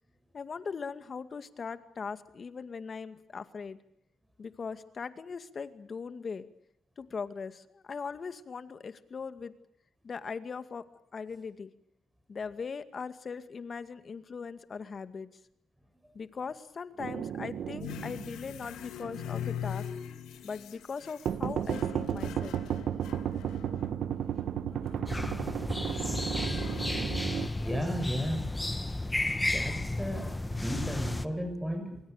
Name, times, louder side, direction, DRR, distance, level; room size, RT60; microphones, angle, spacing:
voice 1, 0.3-3.8 4.4-6.5 7.0-9.5 10.0-10.9 11.1-11.7 12.3-15.3 16.1-19.9 20.4-22.6, left 5 dB, 40° left, 11 dB, 2.2 m, -40 dB
sound 1, 17.0-19.3 19.6-19.7 21.3-27.5, right 9 dB, 65° right, 1.2 m, -34 dB
sound 2, 17.8-24.2 24.7-25.3 25.8-27.8, left 9 dB, 85° left, 2.8 m, -42 dB
sound 3, 25.1-31.3, left 2 dB, 15° left, 1.5 m, -33 dB
voice 2, 27.6-28.6 29.4-32.0, equal, 5° right, 5 dB, 6.6 m, -35 dB
27.0 x 23.0 x 6.7 m, 0.75 s
cardioid pair, 90°, 0 cm